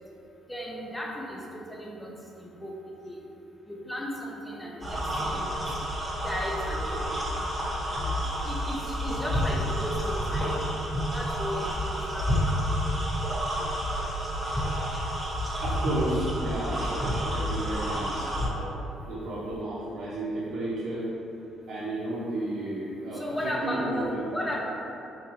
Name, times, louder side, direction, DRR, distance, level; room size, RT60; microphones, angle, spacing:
voice 1, 0.5-2.1 2.4-2.7 3.0-3.2 3.7-5.5 6.2-6.9 7.3-7.4 8.4-10.6 11.1-12.4 23.1-24.6, equal, 10° left, -2 dB, 0.5 m, -35 dB
sound 1, 4.8-18.5, equal, 20° right, 0.9 m, -29 dB
voice 2, 15.6-18.7 19.1-21.1 21.7-24.2, right 1 dB, 75° right, -10 dB, 0.6 m, -33 dB
3.8 x 2.5 x 3.1 m, 2.9 s
cardioid pair, 105°, 0 cm